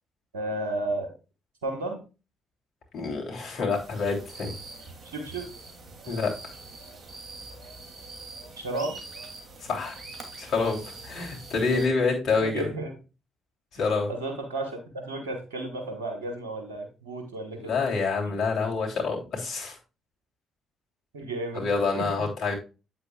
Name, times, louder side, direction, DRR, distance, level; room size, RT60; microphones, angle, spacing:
voice 1, 0.3-1.1 1.6-2.0 5.1-5.5 6.0-6.2 8.6-9.0 11.7-11.9 12.4-12.9 14.1-17.7 18.3-18.4 21.1-21.7 21.9-22.2, right 2 dB, 85° right, 3 dB, 1.4 m, -33 dB
voice 2, 2.9-4.5 6.1-6.3 9.7-9.9 10.4-12.7 13.7-14.1 17.6-19.8 21.5-22.5, left 4 dB, 65° left, 0 dB, 3.2 m, -27 dB
sound 1, 3.7-11.9, right 3 dB, 45° right, 2.7 m, -44 dB
8.4 x 7.5 x 2.4 m, 0.30 s
hypercardioid pair, 50°, 0 cm